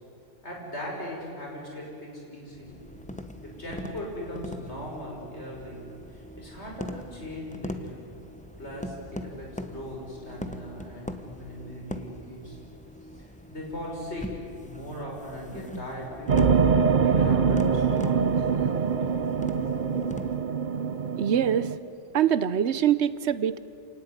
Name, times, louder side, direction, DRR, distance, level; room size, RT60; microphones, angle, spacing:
voice 1, 0.4-2.8 3.4-5.8 6.4-8.0 8.6-12.6 13.1-14.3 14.6-16.6 17.0-19.1, equal, 65° left, -1 dB, 6.3 m, -39 dB
sound 1, 2.5-20.4, equal, 5° left, 1.1 m, -41 dB
sound 2, 16.3-21.8, right 6 dB, 45° right, 0.8 m, -24 dB
voice 2, 21.2-21.7 22.1-23.6, right 9 dB, 65° right, 15 dB, 1.1 m, -23 dB
27.5 x 18.5 x 9.8 m, 2.7 s
omnidirectional pair, 1.2 m